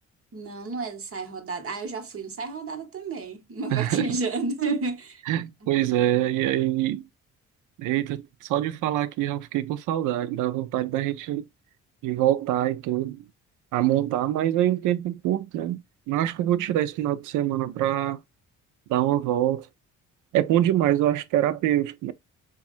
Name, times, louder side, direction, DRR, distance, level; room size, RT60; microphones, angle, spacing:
voice 1, 0.3-5.2 5.6-6.4, right 4 dB, 45° right, 1.3 m, -31 dB
voice 2, 3.7-4.0 5.3-7.0 7.8-11.4 12.0-13.2 13.7-15.8 16.1-18.2 18.9-19.7 20.3-22.1, right 13 dB, 90° right, 0.5 m, -24 dB
7.0 x 2.4 x 2.5 m
cardioid pair, 90°, 30 cm